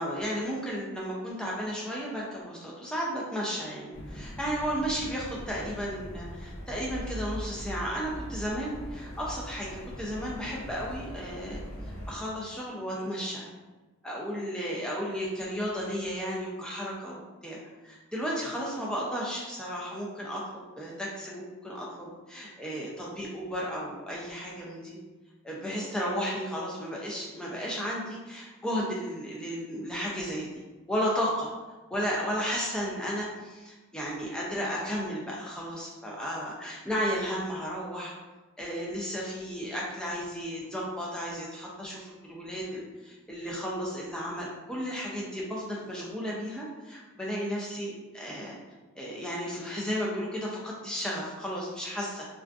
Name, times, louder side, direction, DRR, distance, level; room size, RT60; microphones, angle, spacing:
voice 1, 0.0-13.5 14.0-17.6 17.8-25.0 25.4-30.6 30.9-31.5 31.9-38.1 38.6-48.6 49.0-52.3, equal, 5° left, -5 dB, 0.4 m, -34 dB
sound 1, 3.9-12.2, equal, 75° left, 0.5 m, -41 dB
2.4 x 2.4 x 2.3 m, 1.2 s
head